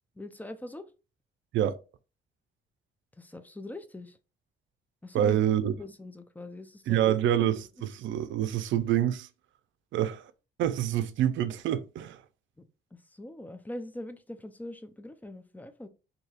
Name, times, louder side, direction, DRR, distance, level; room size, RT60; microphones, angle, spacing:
voice 1, 0.2-0.8 3.2-4.2 5.0-5.4 5.8-7.3 12.6-15.9, left 1 dB, 10° left, 0.5 m, -42 dB
voice 2, 5.1-5.7 6.9-9.3 9.9-10.3 10.6-12.2, right 11 dB, 75° right, 0.5 m, -27 dB
4.1 x 2.8 x 2.4 m
cardioid pair, 90°, 20 cm